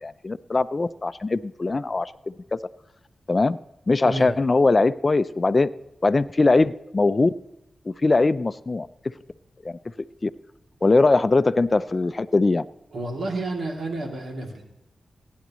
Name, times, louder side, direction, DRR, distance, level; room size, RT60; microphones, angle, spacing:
voice 1, 0.0-2.1 2.5-2.6 3.3-3.6 3.9-5.7 6.0-7.3 7.9-8.9 9.6-9.7 10.2-10.3 10.8-12.7, left 3 dB, 40° left, 15 dB, 0.5 m, -21 dB
voice 2, 12.9-14.6, right 2 dB, 80° right, 0 dB, 2.8 m, -30 dB
21.5 x 10.5 x 3.1 m, 0.92 s
cardioid pair, 55°, 0 cm